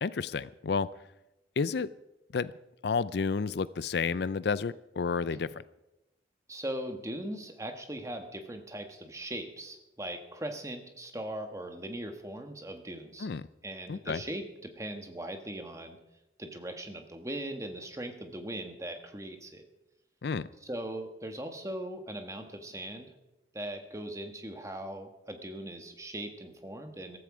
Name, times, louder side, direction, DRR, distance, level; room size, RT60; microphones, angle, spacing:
voice 1, 0.0-0.9 1.6-1.9 2.3-2.5 2.8-5.6 13.2-13.4 13.9-14.2 20.2-20.5, left 5 dB, 70° left, 17 dB, 0.4 m, -30 dB
voice 2, 6.5-13.3 13.6-16.0 16.4-19.6 20.6-23.1 23.5-27.2, right 1 dB, 15° right, 5 dB, 1.5 m, -39 dB
14.5 x 13.5 x 4.9 m, 0.93 s
head